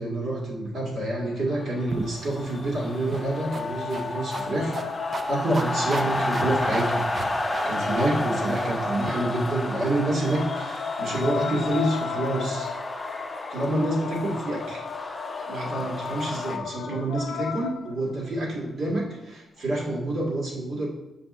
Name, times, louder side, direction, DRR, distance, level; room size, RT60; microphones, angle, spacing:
voice 1, 0.0-4.7 5.3-7.0 7.6-12.7 13.5-14.8 15.5-20.9, right 1 dB, 70° right, -5 dB, 1.8 m, -28 dB
sound 1, 0.9-5.7 10.0-18.3 19.6-19.7, left 8 dB, 90° left, 0.4 m, -36 dB
sound 2, 1.8-16.6, left 2 dB, 20° left, 0.6 m, -31 dB
sound 3, 1.9-9.1, right 3 dB, 35° right, 0.3 m, -38 dB
7.5 x 5.2 x 2.5 m, 1.0 s
cardioid pair, 115°, 0 cm